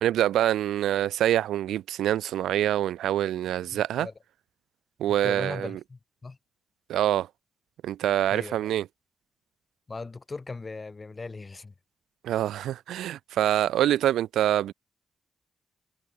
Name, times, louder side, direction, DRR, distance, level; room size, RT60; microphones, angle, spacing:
voice 1, 0.0-4.1 5.0-5.8 6.9-7.3 7.8-8.8 12.2-14.7, right 12 dB, 90° right, 0.7 m, -25 dB
voice 2, 3.7-4.1 5.1-6.4 8.3-8.7 9.9-11.7, left 3 dB, 40° left, 3.9 m, -39 dB
supercardioid pair, 55°, 0 cm